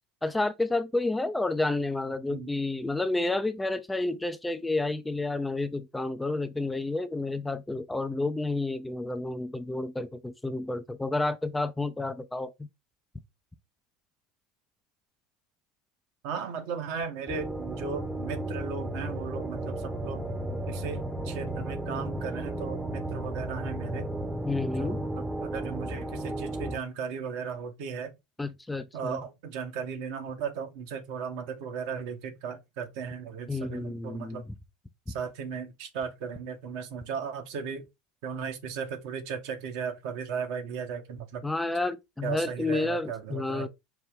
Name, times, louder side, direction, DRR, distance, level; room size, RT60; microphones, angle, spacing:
voice 1, 0.2-12.7 24.4-25.0 28.4-29.2 33.5-34.4 41.4-43.7, left 2 dB, 10° left, 0.4 m, -30 dB
voice 2, 16.2-20.2 20.7-24.1 24.8-25.1 25.4-28.1 28.9-34.4 35.1-37.8 38.2-41.4 42.2-43.7, right 6 dB, 65° right, 1.1 m, -36 dB
sound 1, 17.3-26.8, right 1 dB, 10° right, 0.8 m, -34 dB
5.6 x 2.2 x 3.5 m
hypercardioid pair, 80°, 0 cm